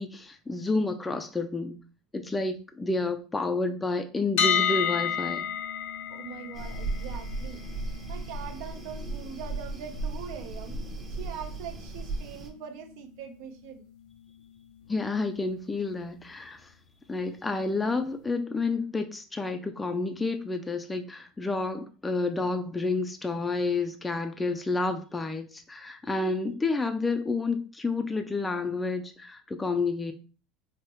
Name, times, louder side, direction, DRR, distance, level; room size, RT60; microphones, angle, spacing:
voice 1, 0.0-1.8 2.1-5.5 14.9-16.7 17.1-30.1, left 3 dB, 10° left, 0.3 m, -30 dB
sound 1, 4.4-16.3, left 8 dB, 75° left, 0.5 m, -34 dB
voice 2, 6.1-7.7 8.1-10.8 11.1-13.8, right 8 dB, 70° right, 0.6 m, -42 dB
sound 2, 6.5-12.5, right 2 dB, 20° right, 0.7 m, -36 dB
4.7 x 2.0 x 3.0 m
supercardioid pair, 145°, 0 cm